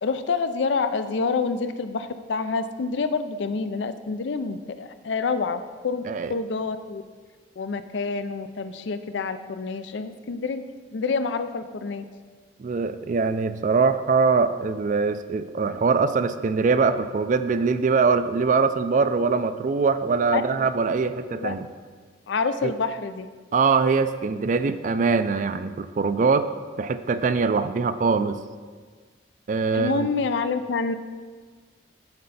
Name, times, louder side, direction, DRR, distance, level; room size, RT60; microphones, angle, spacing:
voice 1, 0.0-6.0 6.3-7.0 7.6-10.7 10.9-12.0 20.3-20.7 21.3-21.5 22.3-23.3 29.7-30.9, left 4 dB, 85° left, 11 dB, 0.5 m, -27 dB
voice 2, 12.6-21.7 22.6-22.7 23.5-26.5 26.8-28.4 29.5-30.1, right 4 dB, 45° right, 12 dB, 0.4 m, -22 dB
11.0 x 4.3 x 4.1 m, 1.5 s
head